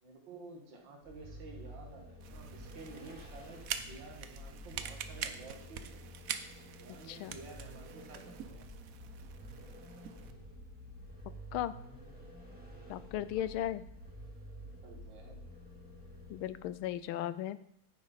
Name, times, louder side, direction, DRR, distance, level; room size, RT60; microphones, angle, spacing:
voice 1, 0.0-6.0 6.8-8.7 12.8-13.4 14.8-15.4, right 3 dB, 60° right, 1 dB, 2.4 m, -52 dB
Vehicle, 1.0-17.0, equal, 5° right, 2.2 m, -50 dB
sound 1, 2.2-10.3, right 8 dB, 80° right, 0.7 m, -45 dB
voice 2, 12.9-13.8 16.3-17.6, left 12 dB, 80° left, 15 dB, 1.4 m, -36 dB
9.9 x 9.5 x 4.1 m, 0.76 s
omnidirectional pair, 2.3 m